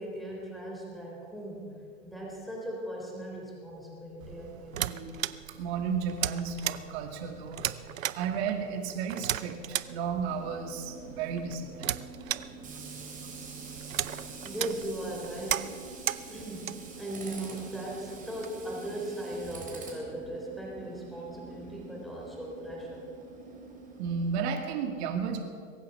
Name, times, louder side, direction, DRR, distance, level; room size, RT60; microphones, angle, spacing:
voice 1, 0.0-4.8 14.4-15.8 16.3-23.1, right 1 dB, ahead, -2 dB, 3.6 m, -38 dB
sound 1, 4.2-18.5, right 11 dB, 85° right, 0.6 m, -37 dB
voice 2, 4.8-5.2 5.6-7.7 8.2-11.9 24.0-25.4, right 6 dB, 55° right, 4 dB, 2.4 m, -33 dB
Tools, 10.3-24.6, right 3 dB, 20° right, 3.7 m, -46 dB
22.5 x 9.2 x 5.6 m, 2.2 s
hypercardioid pair, 105°, 39 cm